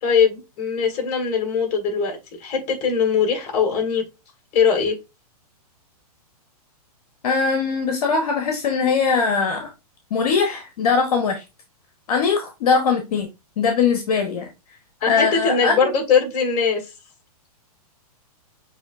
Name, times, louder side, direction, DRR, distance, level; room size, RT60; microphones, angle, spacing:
voice 1, 0.0-2.2 2.4-4.0 4.5-5.0 15.0-16.8, left 6 dB, 35° left, 2.4 m, -21 dB
voice 2, 7.2-9.7 10.1-11.4 12.1-13.3 13.6-14.5 15.1-15.7, left 5 dB, 70° left, 1.2 m, -21 dB
7.0 x 3.0 x 2.5 m
hypercardioid pair, 130°, 20 cm